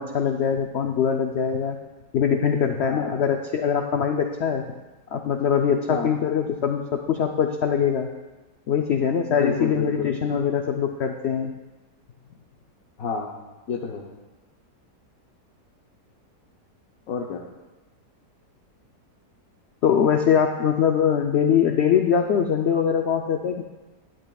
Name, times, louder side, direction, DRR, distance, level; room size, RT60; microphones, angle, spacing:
voice 1, 0.0-1.8 2.1-4.6 5.1-8.1 8.7-11.5 19.8-23.6, left 7 dB, 85° left, 4 dB, 0.6 m, -22 dB
voice 2, 2.9-3.2 5.9-6.1 9.3-10.1 13.0-13.4 13.7-14.0 17.1-17.4, left 5 dB, 65° left, -1 dB, 1.2 m, -29 dB
12.0 x 10.5 x 2.3 m, 1.1 s
omnidirectional pair, 1.7 m